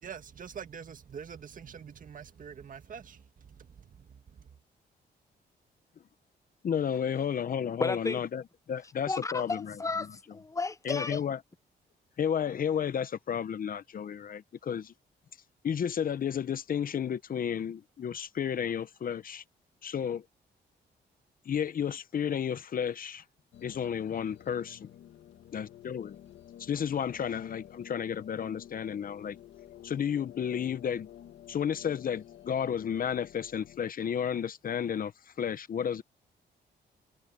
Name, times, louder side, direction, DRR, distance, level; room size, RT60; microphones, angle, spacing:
voice 1, 0.0-4.5, right 7 dB, 50° right, 1.8 m, -45 dB
voice 2, 6.6-8.4 8.7-9.7 10.8-11.4 12.2-14.9 15.6-19.4 19.8-20.2 21.4-23.2 23.6-24.9 25.5-26.2 26.6-29.4 29.8-31.1 31.5-35.1 35.4-36.0, left 8 dB, 50° left, 1.0 m, -32 dB
voice 3, 7.8-8.2 9.1-11.2, left 3 dB, 15° left, 0.7 m, -33 dB
sound 1, 23.5-33.8, left 11 dB, 90° left, 2.2 m, -51 dB
cardioid pair, 105°, 18 cm